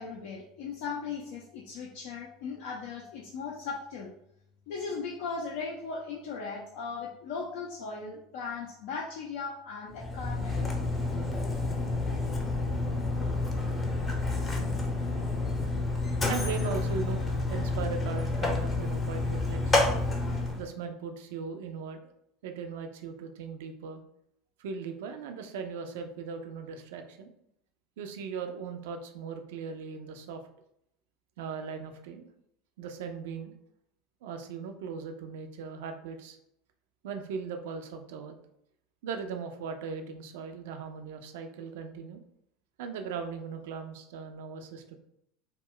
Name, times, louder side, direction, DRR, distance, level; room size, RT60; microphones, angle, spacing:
voice 1, 0.0-4.1 4.7-10.6, left 5 dB, 60° left, -2 dB, 0.4 m, -38 dB
Mechanisms, 9.9-20.7, left 2 dB, 20° left, 0.7 m, -29 dB
voice 2, 16.3-17.2 17.5-19.9 20.6-22.0 22.4-24.0 24.6-27.3 28.0-30.4 31.4-32.3 32.8-33.5 34.2-36.4 37.0-38.4 39.0-42.2 42.8-45.0, right 5 dB, 65° right, 6 dB, 0.4 m, -38 dB
2.2 x 2.0 x 3.7 m, 0.75 s
figure-of-eight pair, 75°, 0 cm